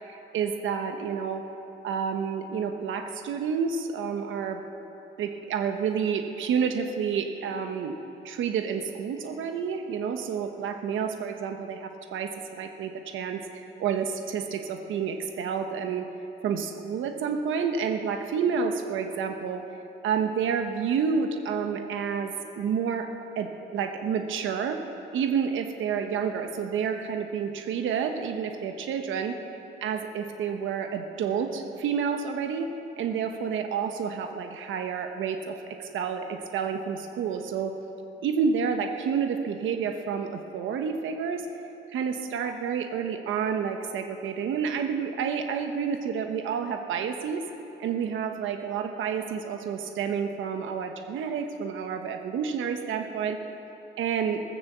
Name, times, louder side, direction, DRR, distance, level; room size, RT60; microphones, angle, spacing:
voice 1, 0.1-1.4 1.8-4.6 5.2-8.0 8.2-16.1 16.4-19.6 20.0-23.1 23.4-24.8 25.1-29.4 29.8-32.7 33.0-37.7 38.2-41.4 41.9-47.4 47.8-53.5 54.0-54.4, right 6 dB, 80° right, 5 dB, 1.2 m, -29 dB
14.0 x 13.5 x 7.4 m, 2.9 s
cardioid pair, 90°, 20 cm